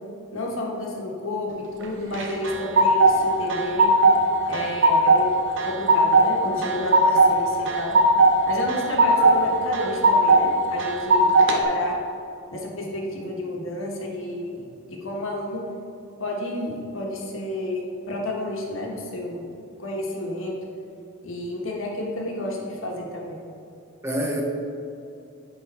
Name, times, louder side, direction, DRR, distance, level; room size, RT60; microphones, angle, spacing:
voice 1, 0.3-3.9 4.5-5.3 5.6-8.0 8.5-12.0 12.5-15.6 16.2-19.4 19.8-20.6 21.2-23.4, left 1 dB, 65° left, -2 dB, 1.3 m, -30 dB
sound 1, 2.1-3.1 3.5-4.2 4.5-5.2 5.6-6.3 6.6-7.3 7.7-8.3 8.7-9.4 9.7-10.4 10.8-11.6, right 2 dB, 55° right, 0.7 m, -17 dB
voice 2, 9.2-9.5 9.8-10.0 24.0-24.4, right 1 dB, 10° right, 0 dB, 0.6 m, -28 dB
10.0 x 3.8 x 4.2 m, 2.7 s
head